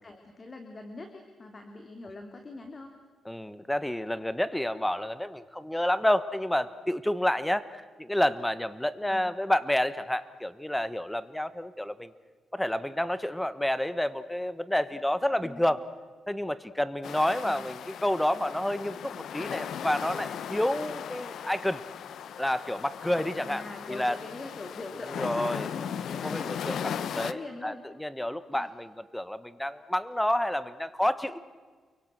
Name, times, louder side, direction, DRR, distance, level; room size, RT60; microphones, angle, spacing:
voice 1, 0.0-3.0 9.1-9.4 15.4-15.8 17.4-17.6 23.4-27.8 28.5-28.7, left 2 dB, 35° left, 5 dB, 2.6 m, -43 dB
voice 2, 3.2-12.1 12.5-15.8 16.3-21.8 22.4-23.6 23.9-24.2 25.2-25.7 26.2-26.8 27.2-27.7 28.0-31.4, left 1 dB, 5° left, 14 dB, 1.4 m, -29 dB
sound 1, 17.0-27.3, left 8 dB, 75° left, 0.9 m, -37 dB
29.5 x 24.0 x 6.2 m, 1.5 s
cardioid pair, 95°, 0 cm